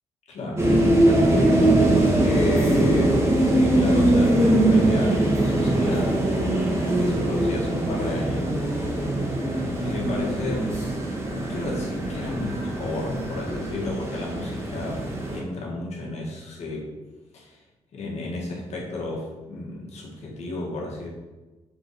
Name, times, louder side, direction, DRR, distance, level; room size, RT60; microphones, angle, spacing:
voice 1, 0.3-6.2 6.8-8.5 9.8-10.7 11.3-16.9 17.3-17.6 17.9-21.1, left 2 dB, 65° left, -3 dB, 1.7 m, -32 dB
sound 1, 0.6-15.4, right 1 dB, 20° right, 1.3 m, -22 dB
6.9 x 3.9 x 4.1 m, 1.2 s
cardioid pair, 130°, 12 cm